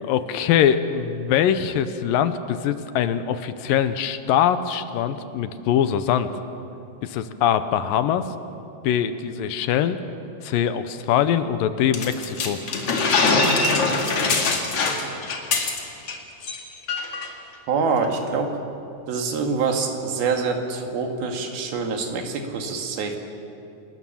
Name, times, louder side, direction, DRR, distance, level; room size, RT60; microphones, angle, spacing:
voice 1, 0.0-6.3 7.0-8.2 8.8-10.0 10.4-12.6, left 9 dB, 80° left, 11 dB, 2.5 m, -22 dB
sound 1, 11.9-16.2 16.4-16.6 16.9-17.3, left 3 dB, 45° left, 2.7 m, -22 dB
voice 2, 17.7-18.5 19.1-23.2, right 5 dB, 90° right, 3 dB, 3.9 m, -25 dB
28.5 x 19.5 x 7.2 m, 2.7 s
omnidirectional pair, 4.2 m